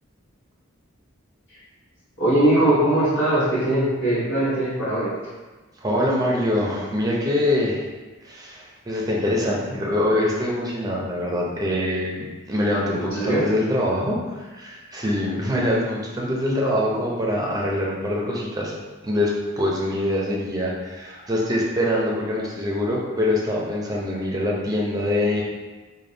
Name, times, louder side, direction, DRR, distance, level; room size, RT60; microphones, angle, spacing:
voice 1, 2.2-5.1 13.0-13.4, right 1 dB, 60° left, -12 dB, 1.3 m, -20 dB
voice 2, 5.8-7.9 8.2-18.7 19.0-25.4, left 1 dB, 15° right, -3 dB, 0.6 m, -24 dB
3.4 x 2.3 x 3.9 m, 1.3 s
head